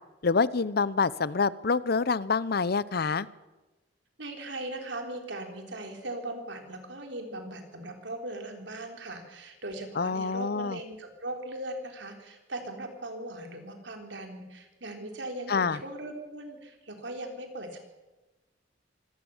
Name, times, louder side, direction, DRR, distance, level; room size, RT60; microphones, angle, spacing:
voice 1, 0.2-3.3 10.0-10.8 15.5-15.8, left 4 dB, 55° left, 19 dB, 0.7 m, -26 dB
voice 2, 4.2-17.8, right 1 dB, 70° right, 4 dB, 3.9 m, -39 dB
25.0 x 18.0 x 7.2 m, 1.1 s
head